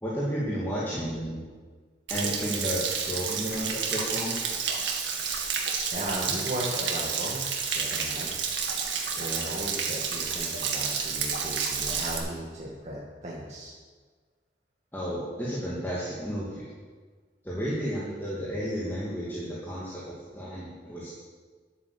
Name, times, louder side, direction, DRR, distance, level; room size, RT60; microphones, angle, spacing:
voice 1, 0.0-1.4 2.1-4.4 14.9-16.6 17.4-21.1, equal, 10° left, -7 dB, 2.4 m, -32 dB
Stream / Splash splatter / Trickle dribble, 2.1-12.2, right 6 dB, 80° right, 1.9 m, -30 dB
voice 2, 5.4-7.5 7.7-8.3 9.2-13.7, right 1 dB, 40° right, -5 dB, 1.8 m, -36 dB
11.0 x 9.0 x 7.0 m, 1.5 s
head